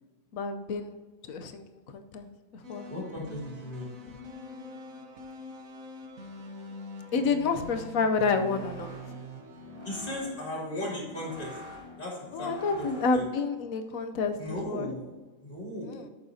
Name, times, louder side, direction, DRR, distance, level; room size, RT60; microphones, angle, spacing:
voice 1, 0.3-0.9 1.2-2.9 7.1-8.9 12.3-14.9 15.8-16.1, left 4 dB, 90° left, 7 dB, 1.2 m, -29 dB
sound 1, 2.6-10.8, left 1 dB, 90° right, 1.6 m, -45 dB
voice 2, 2.9-3.9 9.8-11.6 12.0-12.9 13.1-13.2 14.4-15.2 15.4-16.1, left 1 dB, 40° left, -5 dB, 3.3 m, -36 dB
sound 2, 8.1-13.4, left 3 dB, 30° right, 2.8 m, -46 dB
13.5 x 6.8 x 2.8 m, 1.4 s
omnidirectional pair, 1.4 m